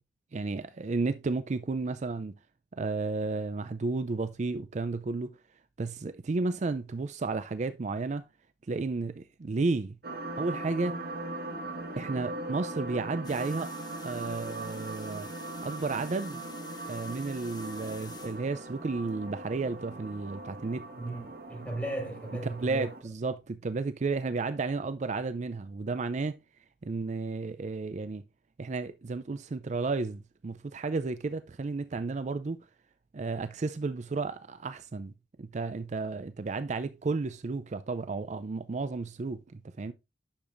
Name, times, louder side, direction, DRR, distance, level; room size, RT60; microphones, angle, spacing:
voice 1, 0.3-2.4 2.7-5.4 5.8-8.2 8.7-10.0 10.4-10.9 12.0-13.7 14.0-15.3 15.6-16.4 16.9-20.9 22.6-26.4 26.8-28.2 28.6-32.6 33.1-35.1 35.4-39.9, right 3 dB, 40° right, 0.4 m, -32 dB
sound 1, 10.0-23.0, right 2 dB, 60° right, 1.5 m, -40 dB
sound 2, 13.2-19.1, left 5 dB, 25° left, 1.3 m, -51 dB
voice 2, 20.9-22.9, right 1 dB, 10° left, 4.9 m, -36 dB
10.0 x 6.8 x 2.5 m
head